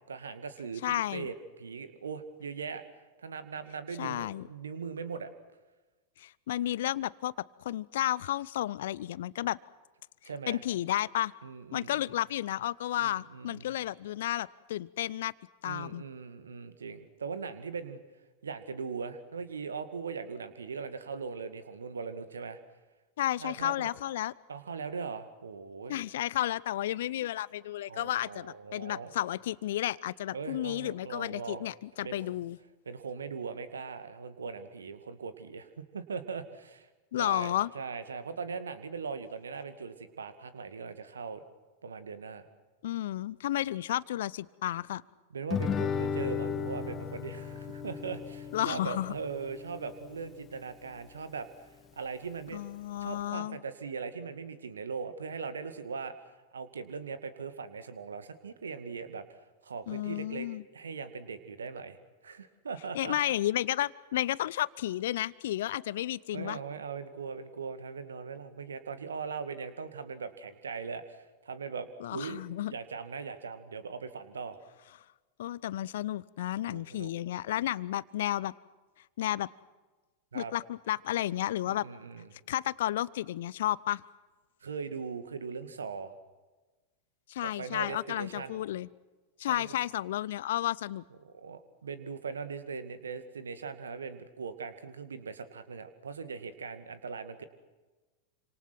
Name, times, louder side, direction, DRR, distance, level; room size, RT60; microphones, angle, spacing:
voice 1, 0.1-2.8 3.2-5.3 10.2-10.6 11.4-12.2 13.0-13.6 15.6-18.0 18.4-22.6 23.4-23.9 24.5-26.0 27.9-29.1 30.3-31.7 32.0-32.3 32.9-36.9 37.2-41.4 41.8-42.5 45.3-52.6 53.0-62.0 62.2-63.2 66.3-72.4 72.7-74.6 76.6-77.1 80.3-80.5 81.7-82.3 84.6-86.1 87.4-88.6 89.5-89.7 91.2-97.4, right 5 dB, 70° right, 11 dB, 2.2 m, -40 dB
voice 2, 0.8-1.3 4.0-4.5 6.2-7.3 7.6-9.6 10.5-11.3 11.7-15.3 15.6-16.0 23.2-24.3 25.9-32.6 37.1-37.7 42.8-45.0 48.5-49.1 52.5-53.6 59.9-60.6 62.9-66.6 72.0-72.7 75.4-78.5 79.2-79.5 80.3-81.8 82.5-84.0 87.3-88.9 89.4-91.0, left 13 dB, 55° left, 21 dB, 0.7 m, -32 dB
Guitar, 45.5-50.6, left 6 dB, 25° left, 1.8 m, -35 dB
28.5 x 26.5 x 6.0 m, 1.2 s
figure-of-eight pair, 90°, 0 cm